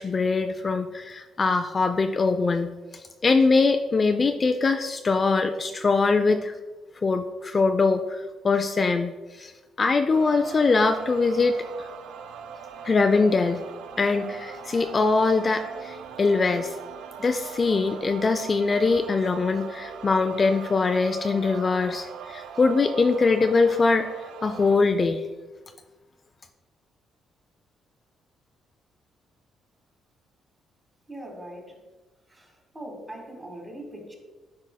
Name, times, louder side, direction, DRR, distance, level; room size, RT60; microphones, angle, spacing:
voice 1, 0.0-2.7 3.2-6.5 7.0-8.2 8.4-9.1 9.4-9.5 9.8-11.6 12.8-13.6 14.0-16.7 17.2-24.0 24.4-25.2, left 4 dB, 35° left, 7 dB, 0.3 m, -22 dB
sound 1, 10.1-24.8, right 7 dB, 90° right, 0.4 m, -41 dB
voice 2, 31.1-31.8 32.3-34.1, right 1 dB, 20° right, 1 dB, 1.9 m, -41 dB
9.7 x 4.8 x 2.2 m, 1.2 s
cardioid pair, 90°, 0 cm